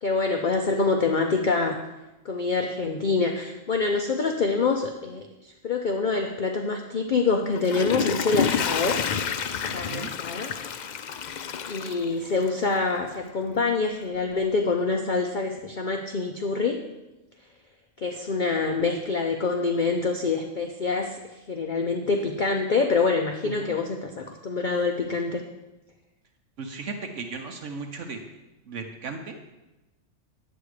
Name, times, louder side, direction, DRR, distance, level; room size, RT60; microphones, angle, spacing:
voice 1, 0.0-1.8 2.2-9.0 9.7-10.5 11.7-16.8 18.0-21.2 21.5-25.4, left 4 dB, 45° left, 3 dB, 0.7 m, -26 dB
Water / Toilet flush, 7.4-12.7 13.2-13.3, left 7 dB, 80° left, 0.4 m, -29 dB
voice 2, 23.4-23.7 26.6-28.2 28.6-29.4, right 4 dB, 65° right, 5 dB, 1.1 m, -36 dB
10.0 x 8.1 x 4.9 m, 1.0 s
omnidirectional pair, 1.4 m